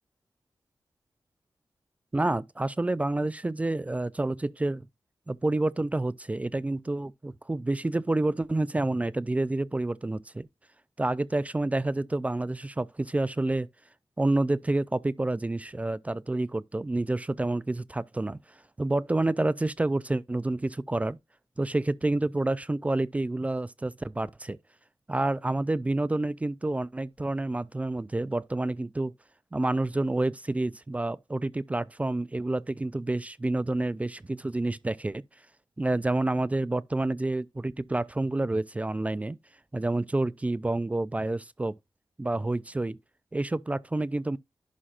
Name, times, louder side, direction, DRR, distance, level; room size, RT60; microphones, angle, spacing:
voice 1, 2.1-4.8 5.3-10.5 11.0-13.7 14.2-18.4 18.8-21.2 21.6-24.6 25.1-29.1 29.5-35.2 35.8-39.4 39.7-41.7 42.2-43.0 43.3-44.4, right 2 dB, 15° right, 0.3 m, -28 dB
11.0 x 5.7 x 2.4 m
wide cardioid pair, 150°, 8 cm